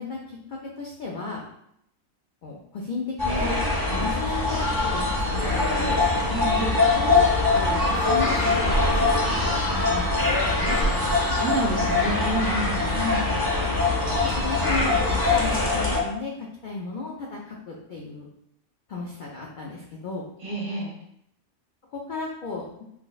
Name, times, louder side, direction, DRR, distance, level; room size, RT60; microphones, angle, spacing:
voice 1, 0.0-1.4 2.4-3.6 3.9-5.1 5.3-5.4 5.7-6.0 6.6-9.1 9.4-10.8 12.9-13.2 14.2-18.3 18.9-20.2 21.9-22.8, left 4 dB, 85° left, -2 dB, 0.4 m, -34 dB
sound 1, 3.2-16.0, left 3 dB, 20° left, 0.6 m, -23 dB
voice 2, 6.3-6.7 11.0-13.3 20.4-20.9, right 2 dB, 55° right, -5 dB, 1.6 m, -29 dB
5.9 x 2.1 x 2.3 m, 0.75 s
omnidirectional pair, 1.4 m